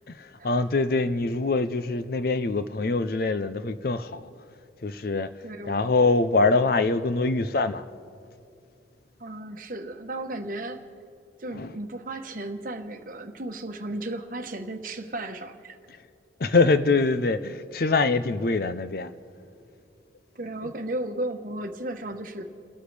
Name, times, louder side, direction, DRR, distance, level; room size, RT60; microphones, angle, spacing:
voice 1, 0.1-4.3 4.8-7.8 11.5-11.8 16.4-19.1, left 3 dB, 55° left, 0.5 m, -24 dB
voice 2, 5.4-5.9 9.2-10.8 11.4-15.8 20.3-22.4, right 1 dB, 45° right, 1.0 m, -34 dB
30.0 x 13.0 x 3.3 m
head